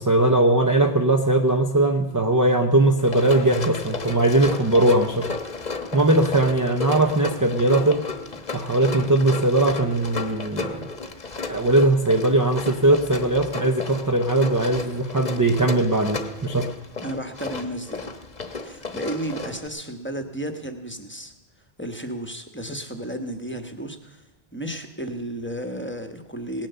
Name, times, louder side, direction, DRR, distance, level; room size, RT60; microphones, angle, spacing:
voice 1, 0.0-5.3 5.9-8.0 8.5-10.8 11.5-16.7, right 2 dB, 20° right, 4 dB, 0.6 m, -20 dB
Run, 3.0-19.7, left 3 dB, 45° left, 1.2 m, -33 dB
voice 2, 17.0-18.2 18.6-21.3 21.8-24.2 24.5-26.7, right 1 dB, 10° left, 6 dB, 1.1 m, -33 dB
18.0 x 10.5 x 6.8 m, 1.1 s
omnidirectional pair, 1.1 m